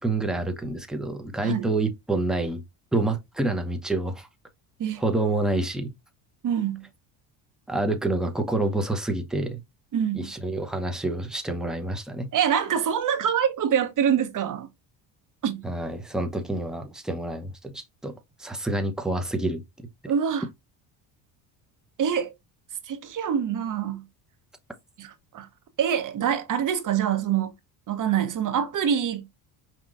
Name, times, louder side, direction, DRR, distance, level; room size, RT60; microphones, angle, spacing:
voice 1, 0.0-2.6 2.9-4.3 5.0-5.9 7.7-9.6 10.1-12.3 15.6-18.1 18.4-19.6, right 2 dB, ahead, 0.8 m, -27 dB
voice 2, 6.4-6.9 9.9-10.3 12.3-14.7 15.4-15.7 20.1-20.5 22.0-22.3 22.9-24.1 25.0-25.5 25.8-27.5 27.9-29.3, right 8 dB, 45° right, 1.0 m, -25 dB
5.3 x 2.9 x 2.5 m
supercardioid pair, 95°, 43 cm